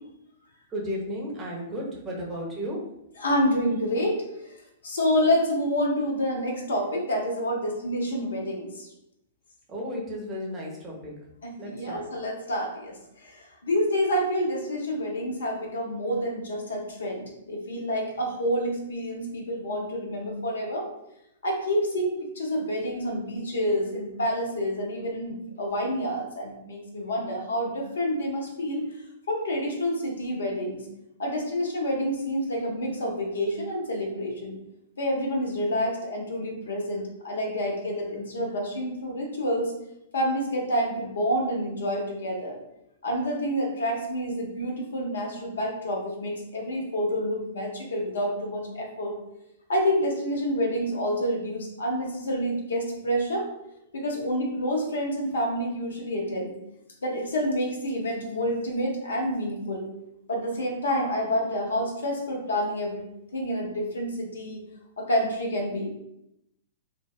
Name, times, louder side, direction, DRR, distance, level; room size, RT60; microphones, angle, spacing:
voice 1, 0.7-2.8 9.7-11.1 11.6-12.0, equal, 20° right, -3 dB, 0.7 m, -34 dB
voice 2, 3.2-4.2 4.8-8.9 11.4-20.9 21.4-28.9 29.3-30.8 31.2-34.6 35.0-39.7 40.1-42.6 43.0-49.2 49.7-53.5 53.9-56.5 57.0-59.9 60.3-63.0 63.3-64.6 65.0-65.9, equal, 65° left, 1 dB, 0.6 m, -28 dB
3.3 x 2.1 x 2.2 m, 0.82 s
figure-of-eight pair, 105°, 0 cm